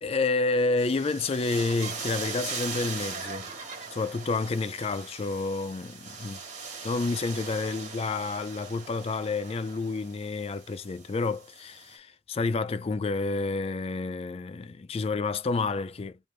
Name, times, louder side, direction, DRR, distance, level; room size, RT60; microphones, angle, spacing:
voice 1, 0.0-3.5 3.9-6.4 6.8-16.2, left 3 dB, 30° left, 0.3 m, -29 dB
sound 1, 0.8-11.9, right 5 dB, 40° right, 1.8 m, -40 dB
4.9 x 2.4 x 3.2 m
head